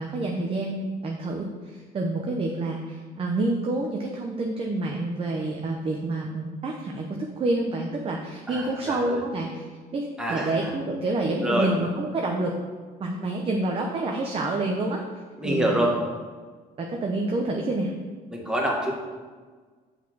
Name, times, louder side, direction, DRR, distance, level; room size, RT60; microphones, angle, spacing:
voice 1, 0.0-9.6 9.9-12.6 13.0-15.0 15.4-15.9 16.8-17.9, right 2 dB, 35° right, 1 dB, 0.7 m, -28 dB
voice 2, 8.5-9.2 10.2-10.7 11.4-11.7 15.4-15.9 18.3-18.9, right 1 dB, 5° right, -2 dB, 1.5 m, -26 dB
5.8 x 4.2 x 6.1 m, 1.5 s
cardioid pair, 110°, 17 cm